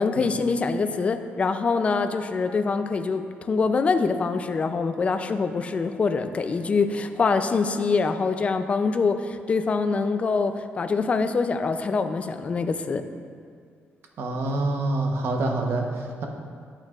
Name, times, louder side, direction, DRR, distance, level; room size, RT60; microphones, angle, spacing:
voice 1, 0.0-13.0, left 4 dB, 30° left, 8 dB, 0.4 m, -24 dB
voice 2, 14.2-16.2, right 2 dB, 65° right, 2 dB, 0.9 m, -26 dB
11.0 x 9.0 x 2.4 m, 2.2 s
cardioid pair, 150°, 4 cm